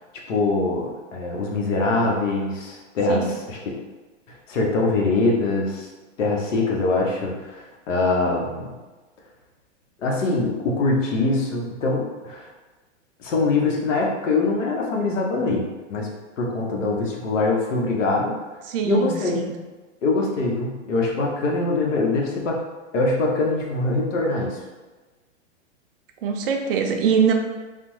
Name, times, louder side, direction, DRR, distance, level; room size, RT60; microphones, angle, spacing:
voice 1, 0.3-3.8 4.5-5.9 6.2-8.8 10.0-12.5 13.2-15.6 15.9-16.1 16.4-18.4 18.8-19.4 20.0-22.6 22.9-24.6, left 3 dB, 80° left, 0 dB, 0.9 m, -23 dB
voice 2, 18.7-19.6 26.2-27.3, right 6 dB, 50° right, 3 dB, 0.5 m, -23 dB
3.3 x 2.1 x 3.0 m, 1.2 s
hypercardioid pair, 135°, 37 cm